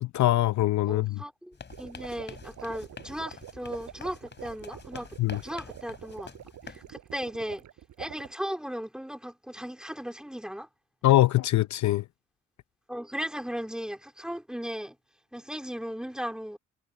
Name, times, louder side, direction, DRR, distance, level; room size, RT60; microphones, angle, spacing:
voice 1, 0.0-1.2 5.2-5.4 11.0-12.0, left 14 dB, 70° left, 0.8 m, -23 dB
voice 2, 0.8-5.1 5.4-6.3 6.7-7.6 8.0-10.7 12.9-15.0 15.3-16.6, equal, ahead, 2.5 m, -36 dB
sound 1, 1.5-6.9, left 5 dB, 35° left, 4.5 m, -47 dB
sound 2, 1.7-8.3, right 11 dB, 70° right, 5.1 m, -46 dB
cardioid pair, 90°, 30 cm